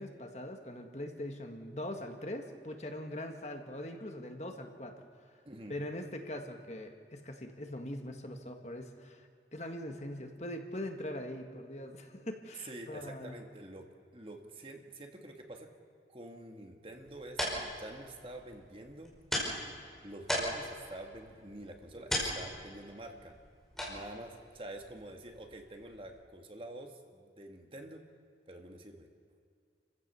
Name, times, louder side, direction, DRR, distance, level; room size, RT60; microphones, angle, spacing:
voice 1, 0.0-4.9 5.7-13.4, left 1 dB, 40° left, 4 dB, 1.8 m, -42 dB
voice 2, 12.6-13.9 14.1-15.7 16.1-19.1 20.0-23.3 23.9-28.0 28.5-29.1, right 1 dB, 30° right, 4 dB, 2.0 m, -47 dB
sound 1, 16.9-26.2, equal, ahead, 5.1 m, -40 dB
30.0 x 15.5 x 7.0 m, 2.3 s
head